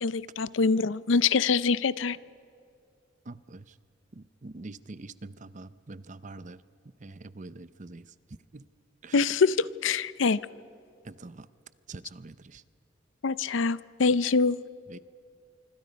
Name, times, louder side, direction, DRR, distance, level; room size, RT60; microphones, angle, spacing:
voice 1, 0.0-2.2 9.1-10.4 13.2-14.6, left 4 dB, 75° left, 18 dB, 0.6 m, -24 dB
voice 2, 3.3-3.6 4.2-6.6 7.0-8.0 8.5-8.6 9.0-9.1 11.2-11.5 11.9-12.3 14.9-15.0, right 3 dB, 40° right, 15 dB, 0.7 m, -44 dB
26.0 x 25.0 x 5.2 m, 2.4 s
head